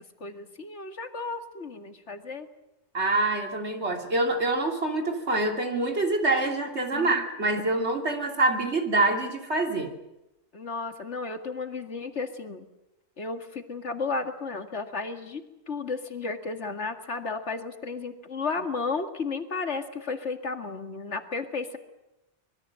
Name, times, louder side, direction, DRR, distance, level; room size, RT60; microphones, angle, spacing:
voice 1, 0.2-2.5 6.9-7.3 10.5-12.7 13.2-21.8, left 4 dB, 70° left, 7 dB, 2.3 m, -33 dB
voice 2, 2.9-9.9, right 2 dB, 65° right, 4 dB, 3.3 m, -26 dB
25.0 x 21.5 x 7.7 m, 0.93 s
omnidirectional pair, 1.2 m